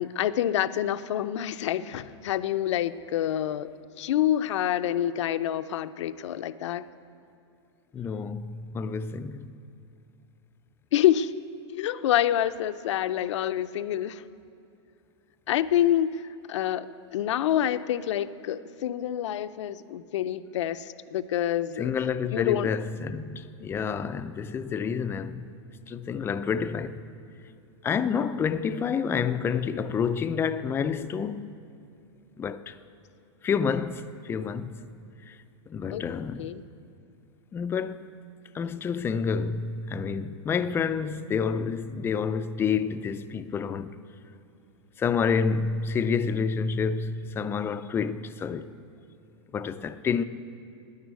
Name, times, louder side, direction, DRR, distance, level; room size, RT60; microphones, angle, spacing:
voice 1, 0.0-3.7 4.0-6.8 10.9-11.3 11.7-14.2 15.5-16.9 17.1-21.9 22.3-22.7 35.9-36.0 36.4-36.6, left 11 dB, 75° left, 0.5 m, -27 dB
voice 2, 7.9-9.5 21.8-25.5 25.9-27.0 27.8-31.5 32.4-32.7 33.4-34.9 35.3-35.4 35.7-36.5 37.5-38.1 38.5-44.0 45.0-48.7 49.5-50.2, left 6 dB, 15° left, 0.4 m, -29 dB
10.5 x 9.7 x 8.2 m
hypercardioid pair, 135°, 15 cm